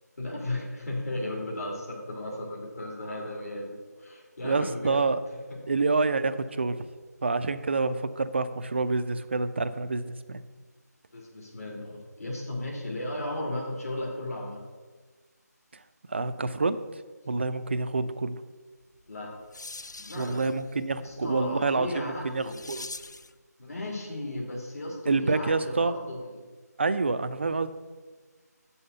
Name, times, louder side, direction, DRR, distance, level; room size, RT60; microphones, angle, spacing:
voice 1, 0.2-5.0 11.1-14.6 19.1-19.3 20.0-20.5 20.9-22.6 23.6-26.3, left 1 dB, 60° left, -3 dB, 2.5 m, -35 dB
voice 2, 4.4-5.2 5.7-6.9 7.2-10.4 16.1-17.0 17.3-18.4 20.1-22.9 25.1-26.0 26.8-27.7, right 3 dB, 40° right, 11 dB, 0.5 m, -27 dB
sound 1, 19.0-23.4, left 3 dB, 85° left, 0.4 m, -45 dB
7.8 x 5.6 x 6.7 m, 1.4 s
figure-of-eight pair, 165°, 9 cm